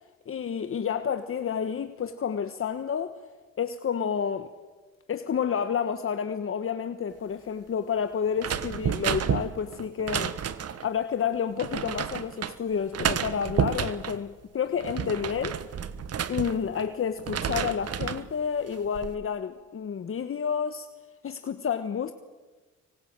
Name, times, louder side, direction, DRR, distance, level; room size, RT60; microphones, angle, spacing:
voice 1, 0.3-3.2 3.6-4.5 5.1-10.3 10.6-15.6 16.3-20.9 21.2-22.1, left 7 dB, 45° left, 1.4 m, -30 dB
sound 1, 8.4-10.9 11.6-12.5 12.9-14.2 14.7-16.9 17.2-18.3 18.7-19.1, right 8 dB, 55° right, 1.4 m, -30 dB
25.0 x 23.5 x 8.9 m
cardioid pair, 90°, 30 cm